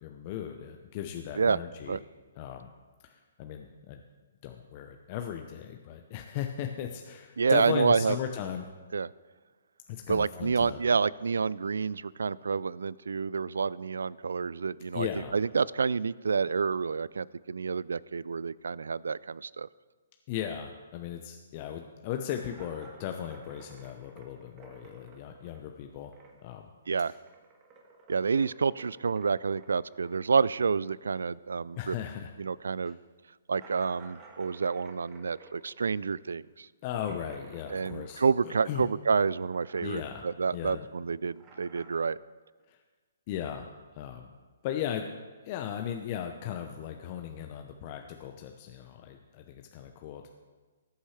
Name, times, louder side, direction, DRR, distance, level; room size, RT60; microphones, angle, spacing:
voice 1, 0.0-2.0 2.4-2.7 3.0-4.0 4.4-8.7 9.9-10.8 14.9-15.3 20.3-26.1 26.4-26.7 27.0-27.2 31.8-32.3 32.9-33.0 36.8-38.9 39.8-40.2 40.5-40.9 42.7-42.8 43.3-43.7 43.9-44.3 44.6-45.1 45.4-50.3, left 10 dB, 40° left, 4 dB, 0.8 m, -37 dB
voice 2, 7.4-8.2 8.9-9.1 10.1-19.7 26.9-27.1 28.1-32.0 32.4-33.0 33.5-36.7 37.7-42.2, right 5 dB, 75° right, 22 dB, 0.3 m, -28 dB
sound 1, 22.3-26.6 26.9-31.9 32.2-32.3 32.7-32.8 33.5-39.1 39.4-40.3 40.6-42.1, right 3 dB, 30° right, 1.7 m, -55 dB
19.5 x 8.5 x 3.3 m, 1.4 s
figure-of-eight pair, 130°, 0 cm